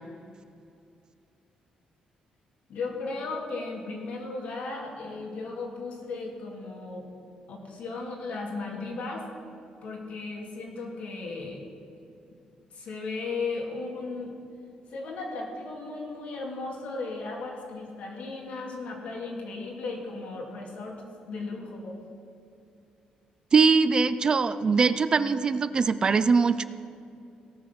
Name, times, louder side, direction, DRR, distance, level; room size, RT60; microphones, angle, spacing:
voice 1, 2.7-7.1 7.5-9.3 9.8-11.6 12.7-14.3 14.9-20.9 21.3-21.9, left 3 dB, 70° left, -1 dB, 2.5 m, -36 dB
voice 2, 23.5-26.6, right 5 dB, 35° right, 13 dB, 0.4 m, -22 dB
17.5 x 6.3 x 6.0 m, 2.5 s
cardioid pair, 125°, 2 cm